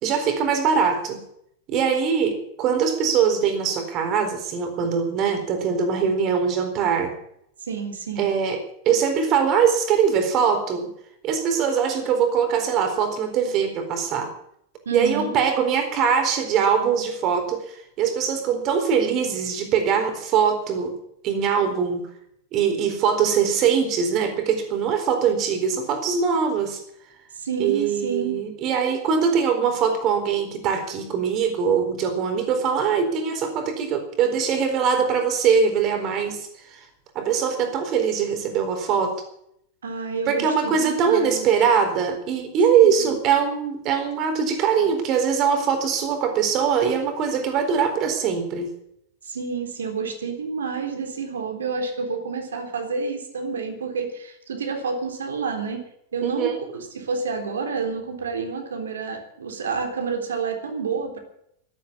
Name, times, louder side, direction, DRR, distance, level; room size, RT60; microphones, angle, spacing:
voice 1, 0.0-1.2 1.7-7.1 8.2-10.9 11.2-14.3 14.9-21.0 21.2-22.1 22.5-26.8 27.6-36.8 37.1-39.2 40.3-48.7 56.2-56.5, right 6 dB, 35° right, 6 dB, 4.1 m, -22 dB
voice 2, 7.7-8.3 14.9-15.4 27.3-28.4 39.8-41.5 43.0-43.2 49.2-55.8 56.1-61.2, right 5 dB, 65° right, 4 dB, 3.6 m, -29 dB
12.5 x 12.5 x 8.7 m, 0.72 s
figure-of-eight pair, 90°, 0 cm